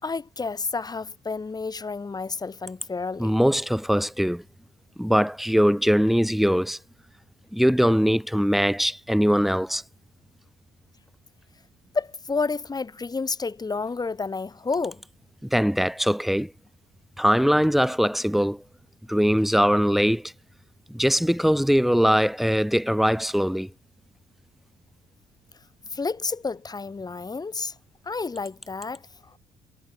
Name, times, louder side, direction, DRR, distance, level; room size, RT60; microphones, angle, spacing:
voice 1, 0.0-3.4 11.9-15.0 25.9-27.7 28.1-29.0, left 4 dB, 25° left, 4.8 m, -30 dB
voice 2, 3.2-4.4 5.0-6.8 7.5-9.8 15.4-16.5 17.2-18.6 19.1-20.3 20.9-23.7, equal, ahead, 1.7 m, -21 dB
cardioid pair, 110°, 17 cm